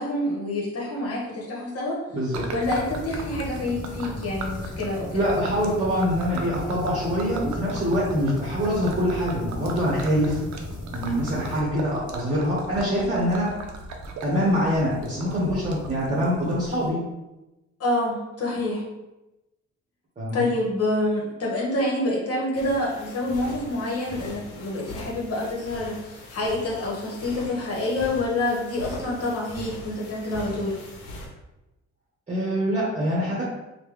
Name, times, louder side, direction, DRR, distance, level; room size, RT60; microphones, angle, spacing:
voice 1, 0.0-2.0 2.5-5.3 17.8-18.8 20.3-30.8, left 1 dB, 50° left, -4 dB, 1.2 m, -27 dB
voice 2, 2.1-2.5 5.1-10.4 10.9-13.5 14.2-17.0 20.2-20.5 32.3-33.4, equal, 25° right, -6 dB, 1.0 m, -24 dB
Gurgling / Liquid, 2.3-16.9, right 2 dB, 70° right, 0.6 m, -39 dB
sound 1, 2.6-11.6, left 1 dB, 5° right, 1.3 m, -37 dB
sound 2, 22.5-31.3, left 1 dB, 85° left, 0.8 m, -41 dB
3.3 x 2.3 x 3.3 m, 1.0 s
cardioid pair, 90°, 30 cm